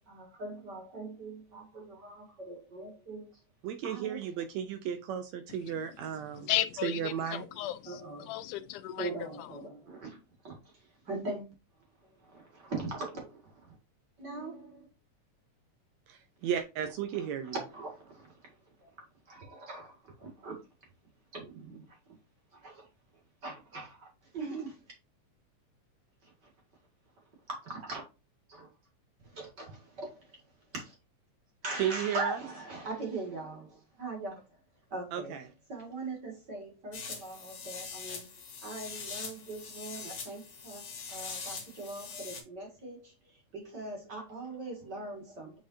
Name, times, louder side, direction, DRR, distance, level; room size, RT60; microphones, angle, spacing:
voice 1, 0.1-3.4 3.8-4.2 7.9-8.4 9.0-10.2 10.4-11.5 12.2-13.8 14.2-14.9 17.1-18.5 18.8-18.9 19.3-20.6 21.3-22.0 22.5-22.9 23.4-24.8 26.2-26.3 27.5-28.0 28.5-28.7 29.2-30.4 30.7-31.0 31.6-34.6 34.9-35.4 35.7-45.6, right 2 dB, 40° right, 2.2 m, -41 dB
voice 2, 3.6-6.5 6.8-7.5 16.1-17.6 31.8-32.4 35.1-35.4, right 9 dB, 75° right, 1.8 m, -34 dB
voice 3, 6.3-9.1, left 14 dB, 85° left, 2.1 m, -34 dB
sound 1, 36.9-42.4, left 5 dB, 50° left, 2.2 m, -43 dB
7.6 x 5.0 x 2.7 m
omnidirectional pair, 3.5 m